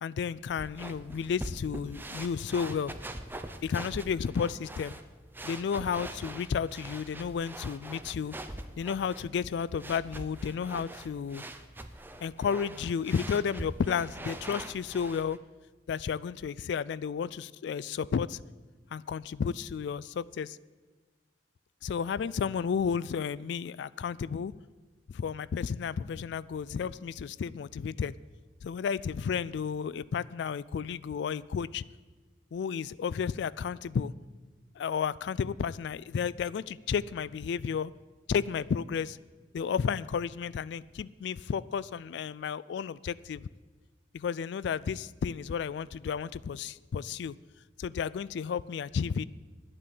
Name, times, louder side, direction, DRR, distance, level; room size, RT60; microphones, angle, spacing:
voice 1, 0.0-2.9 3.6-4.9 5.4-8.3 8.8-11.4 12.2-15.4 15.9-18.4 18.9-20.6 21.8-24.5 25.1-28.1 28.6-31.8 32.5-34.1 34.8-37.9 38.3-39.2 39.5-43.4 44.1-47.3 47.8-49.2, left 6 dB, 65° left, 18 dB, 0.3 m, -32 dB
sound 1, 0.6-15.4, right 1 dB, 10° right, 0.7 m, -43 dB
10.0 x 8.7 x 8.4 m, 1.4 s
head